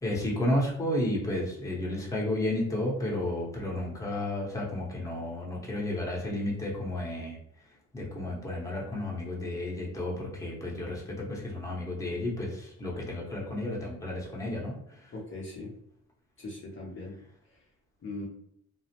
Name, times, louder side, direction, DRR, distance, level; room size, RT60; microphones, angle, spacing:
voice 1, 0.0-15.1, left 1 dB, 10° left, -4 dB, 0.8 m, -32 dB
voice 2, 15.1-15.7 16.4-17.2 18.0-18.3, left 2 dB, 40° left, -4 dB, 0.7 m, -39 dB
2.4 x 2.1 x 2.8 m, 0.72 s
cardioid pair, 90°, 30 cm